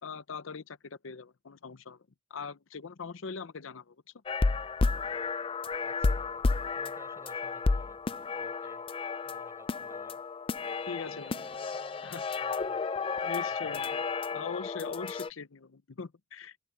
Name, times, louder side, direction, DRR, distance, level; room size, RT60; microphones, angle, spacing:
voice 1, 0.0-2.0 2.3-4.0 10.9-11.4 12.0-12.2 13.2-14.0 14.3-16.7, left 5 dB, 75° left, 0.7 m, -41 dB
sound 1, 4.3-15.3, left 4 dB, 25° left, 0.3 m, -32 dB
voice 2, 5.8-10.3 10.8-13.2 13.6-14.0, right 1 dB, 15° right, 5.8 m, -57 dB
head